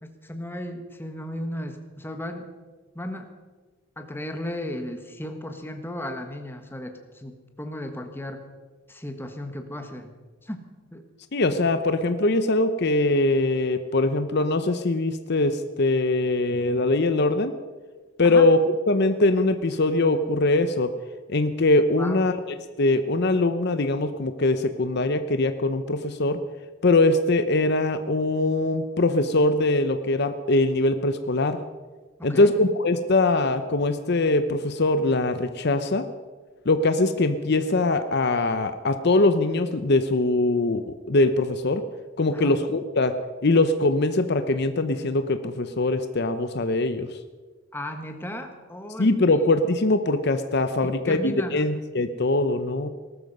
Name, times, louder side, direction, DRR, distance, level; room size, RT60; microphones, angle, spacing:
voice 1, 0.0-2.5 2.9-3.3 4.0-8.4 8.9-10.1 10.4-10.6 10.9-11.0 18.2-18.5 22.0-22.3 32.2-32.5 42.3-42.6 47.7-49.1 50.8-51.7, left 1 dB, 10° left, 6 dB, 1.4 m, -35 dB
voice 2, 11.3-17.6 18.2-18.6 18.9-20.9 21.3-22.4 22.8-26.4 26.8-31.6 32.2-36.1 36.7-41.8 42.2-43.2 43.4-47.1 49.0-52.9, left 2 dB, 55° left, 10 dB, 0.7 m, -22 dB
19.0 x 13.0 x 5.4 m, 1.3 s
head